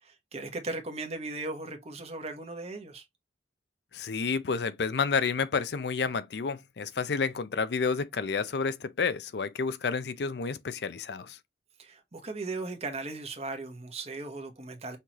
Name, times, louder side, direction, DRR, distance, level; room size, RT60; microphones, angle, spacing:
voice 1, 0.0-3.0 11.8-15.0, right 2 dB, 40° right, 1.2 m, -37 dB
voice 2, 3.9-11.4, left 5 dB, 65° left, 0.5 m, -30 dB
5.7 x 3.1 x 2.9 m
head